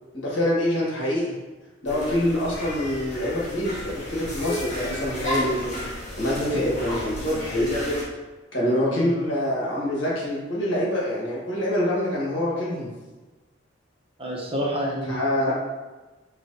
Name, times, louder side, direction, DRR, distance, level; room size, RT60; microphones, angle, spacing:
voice 1, 0.1-1.3 1.8-5.7 6.2-7.7 8.5-12.9 15.1-15.5, left 1 dB, 75° left, -6 dB, 1.4 m, -25 dB
sound 1, 1.9-8.0, left 1 dB, 40° left, 1.4 m, -32 dB
voice 2, 14.2-15.5, equal, 30° right, -3 dB, 0.7 m, -29 dB
5.9 x 2.3 x 2.7 m, 1.2 s
head